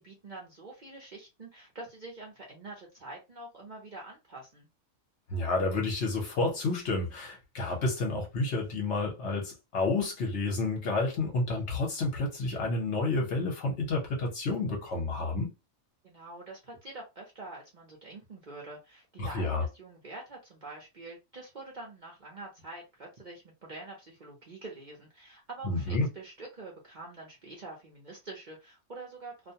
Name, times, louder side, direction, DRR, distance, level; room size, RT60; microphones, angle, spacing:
voice 1, 0.0-4.7 16.0-29.5, right 2 dB, 45° right, 0.7 m, -46 dB
voice 2, 5.3-15.5 19.2-19.6 25.6-26.1, left 3 dB, 60° left, 1.1 m, -30 dB
2.5 x 2.1 x 2.7 m
omnidirectional pair, 1.4 m